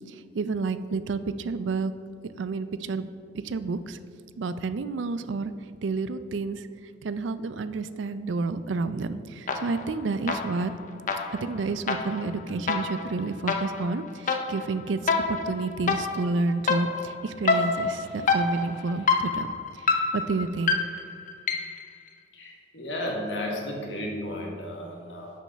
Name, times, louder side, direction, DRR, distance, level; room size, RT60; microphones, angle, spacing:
voice 1, 0.1-1.9 2.4-3.1 3.3-4.0 4.4-5.5 5.8-6.7 7.0-10.7 11.4-19.5 19.8-20.8, right 3 dB, 80° right, 13 dB, 0.4 m, -30 dB
sound 1, 9.5-9.9 10.3-21.9, left 4 dB, 45° left, 0.5 m, -28 dB
voice 2, 22.3-25.3, left 1 dB, 70° left, -1 dB, 1.5 m, -33 dB
6.5 x 5.2 x 5.7 m, 2.2 s
head